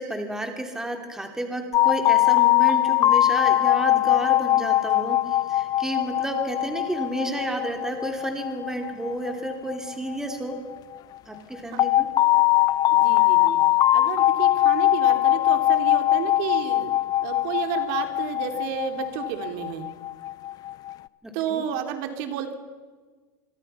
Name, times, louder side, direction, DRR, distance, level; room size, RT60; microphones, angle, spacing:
voice 1, 0.0-10.6 11.3-12.1 21.2-21.6, right 1 dB, 5° right, 3 dB, 2.9 m, -31 dB
sound 1, 1.7-10.5 11.8-20.9, left 14 dB, 35° left, 0.7 m, -21 dB
voice 2, 12.9-13.6 13.9-16.9 17.2-19.9 21.3-22.5, right 9 dB, 65° right, 6 dB, 3.2 m, -31 dB
26.0 x 24.0 x 5.7 m, 1.4 s
supercardioid pair, 140°, 11 cm